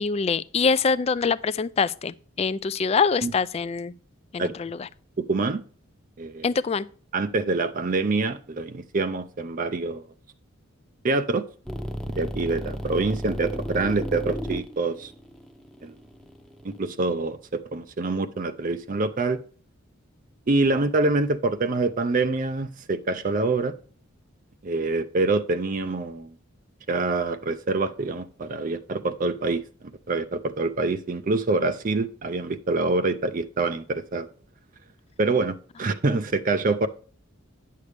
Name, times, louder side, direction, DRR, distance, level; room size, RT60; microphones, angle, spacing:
voice 1, 0.0-3.9 4.3-4.9 6.4-6.9, left 5 dB, 30° left, 0.3 m, -24 dB
voice 2, 5.2-5.6 6.2-6.5 7.1-10.1 11.0-11.4 12.1-15.1 15.8-16.0 16.6-19.4 20.5-23.7 24.6-26.3 26.9-29.6 30.1-34.3 35.2-36.9, right 3 dB, 40° right, 0.5 m, -25 dB
sound 1, 11.7-16.8, equal, 5° left, 0.8 m, -33 dB
9.6 x 6.6 x 3.4 m
head